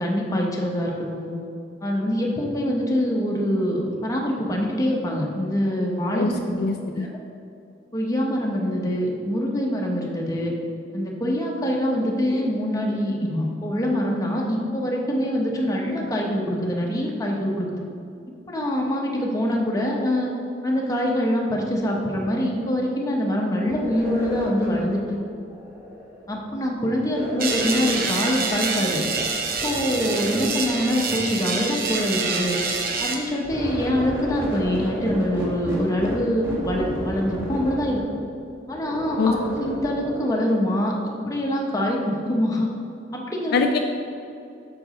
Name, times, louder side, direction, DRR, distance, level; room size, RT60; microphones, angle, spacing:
voice 1, 0.0-1.4 1.8-6.6 7.0-7.1 7.9-10.5 10.9-17.8 18.5-20.3 20.6-25.2 26.3-29.0 29.6-32.6 33.0-38.0 38.7-42.7 43.1-43.6, equal, 20° left, -1 dB, 0.9 m, -24 dB
voice 2, 6.1-7.1 39.2-39.3 43.5-43.8, left 4 dB, 55° left, 4 dB, 0.3 m, -23 dB
sound 1, 23.7-26.4 27.1-29.3 29.6-31.4 32.4-40.2, left 1 dB, 15° right, 1.6 m, -33 dB
sound 2, 27.4-33.2, right 4 dB, 55° right, 0.7 m, -27 dB
6.5 x 4.6 x 4.9 m, 2.5 s
head